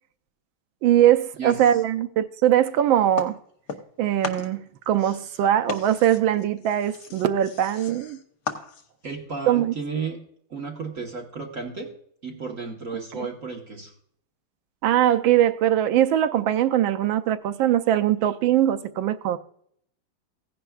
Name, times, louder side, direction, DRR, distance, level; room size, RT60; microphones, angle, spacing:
voice 1, 0.8-3.4 4.0-8.2 9.5-9.7 14.8-19.4, right 11 dB, 80° right, 1.4 m, -21 dB
sound 1, 3.2-4.0 4.2-9.1, left 5 dB, 55° left, 1.3 m, -37 dB
voice 2, 9.0-10.2 10.5-11.9 12.2-13.9, right 5 dB, 45° right, 1.4 m, -33 dB
16.0 x 10.0 x 2.4 m
omnidirectional pair, 2.2 m